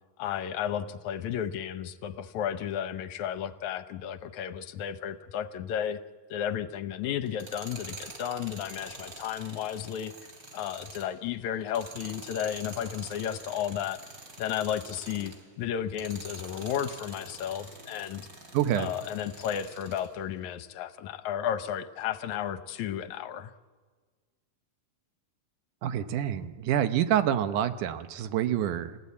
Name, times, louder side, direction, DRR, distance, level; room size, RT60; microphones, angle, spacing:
voice 1, 0.2-6.0 6.3-10.1 10.5-14.0 14.4-18.3 18.8-23.5, left 9 dB, 75° left, 11 dB, 2.1 m, -33 dB
Tools, 7.3-15.5 15.9-20.1, right 2 dB, 30° right, 3.2 m, -46 dB
voice 2, 18.5-18.9 25.8-29.0, right 10 dB, 80° right, 11 dB, 2.4 m, -27 dB
29.5 x 15.0 x 8.3 m, 1.5 s
omnidirectional pair, 3.6 m